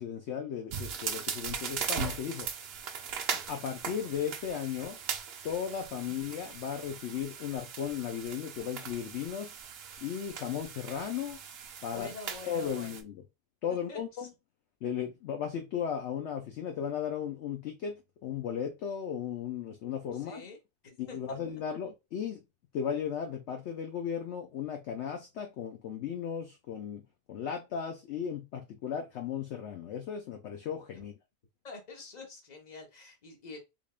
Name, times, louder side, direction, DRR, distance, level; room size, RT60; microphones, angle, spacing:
voice 1, 0.0-2.5 3.3-5.0 5.4-9.5 10.0-11.4 11.8-12.1 12.4-13.1 13.6-14.3 14.8-20.4 21.0-22.4 22.7-27.0 27.3-31.1, left 8 dB, 65° left, 0.8 m, -36 dB
sound 1, 0.7-13.0, right 7 dB, 60° right, 0.7 m, -39 dB
voice 2, 11.8-12.9 13.7-14.3 20.1-20.6 20.8-21.4 30.9-31.0 31.6-33.6, left 3 dB, 35° left, 1.0 m, -46 dB
3.6 x 3.4 x 2.4 m
omnidirectional pair, 1.4 m